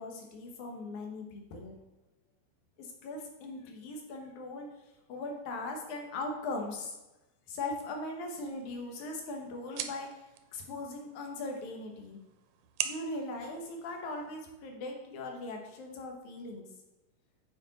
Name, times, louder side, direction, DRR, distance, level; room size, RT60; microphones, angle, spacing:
voice 1, 0.0-1.8 2.8-4.7 5.1-6.9 7.5-10.1 10.5-12.2 12.8-16.7, left 2 dB, 90° left, 2 dB, 2.6 m, -39 dB
sound 1, 8.5-14.5, right 10 dB, 85° right, 2.0 m, -44 dB
8.8 x 4.7 x 4.0 m, 1.0 s
omnidirectional pair, 3.3 m